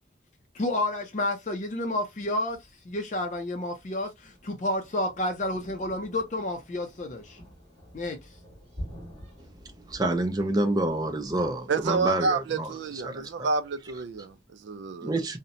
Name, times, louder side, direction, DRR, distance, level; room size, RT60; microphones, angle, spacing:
voice 1, 0.5-2.6 2.8-7.4 7.9-8.2, left 1 dB, 40° left, 0.4 m, -30 dB
Thunder, 2.5-14.4, equal, 35° right, 1.4 m, -48 dB
voice 2, 9.6-13.5 15.0-15.4, right 1 dB, 20° right, 0.4 m, -28 dB
voice 3, 11.7-15.1, right 4 dB, 80° right, 0.4 m, -29 dB
2.7 x 2.1 x 2.5 m
head